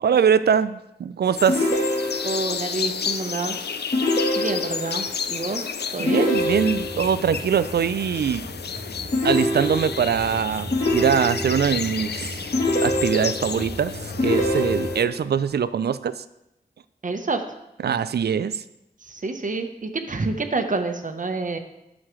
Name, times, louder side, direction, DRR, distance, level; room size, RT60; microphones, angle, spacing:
voice 1, 0.0-1.7 6.0-8.4 9.2-13.9 14.2-16.2 17.8-18.6, right 7 dB, 75° right, 15 dB, 0.4 m, -22 dB
sound 1, 1.3-15.0, left 6 dB, 80° left, 0.5 m, -32 dB
sound 2, 1.5-2.5 3.9-5.0 6.1-7.1 9.1-10.1 10.7-11.7 12.5-13.6 14.2-15.2, left 1 dB, 50° left, 1.5 m, -24 dB
voice 2, 2.2-3.7 4.3-6.3 17.0-17.4 19.0-21.6, right 3 dB, 50° right, 6 dB, 0.9 m, -28 dB
sound 3, 6.4-14.9, equal, 30° left, 1.6 m, -37 dB
11.0 x 6.3 x 3.1 m, 0.88 s
wide cardioid pair, 60°, 17 cm